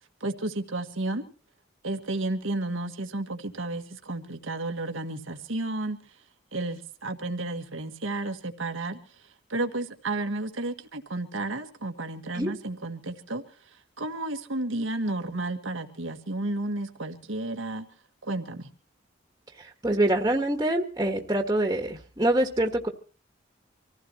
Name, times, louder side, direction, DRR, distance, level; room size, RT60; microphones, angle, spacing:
voice 1, 0.2-1.2 1.8-6.0 6.5-9.0 9.5-13.4 14.0-17.9 18.2-18.7, right 2 dB, 90° right, 5 dB, 1.7 m, -32 dB
voice 2, 19.6-22.9, right 1 dB, 20° right, 2 dB, 1.5 m, -25 dB
26.0 x 15.5 x 3.0 m, 0.37 s
head